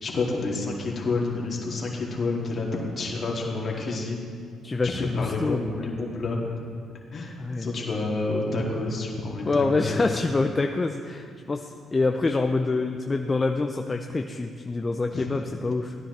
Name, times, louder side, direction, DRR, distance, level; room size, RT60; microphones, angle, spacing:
voice 1, 0.0-4.2 5.0-6.4 7.1-10.1 15.1-15.3, left 3 dB, 50° left, -2 dB, 2.4 m, -29 dB
voice 2, 4.6-5.6 7.4-7.7 9.5-16.0, left 3 dB, 30° left, 5 dB, 0.5 m, -26 dB
14.5 x 9.9 x 3.3 m, 2.2 s
supercardioid pair, 55°, 0 cm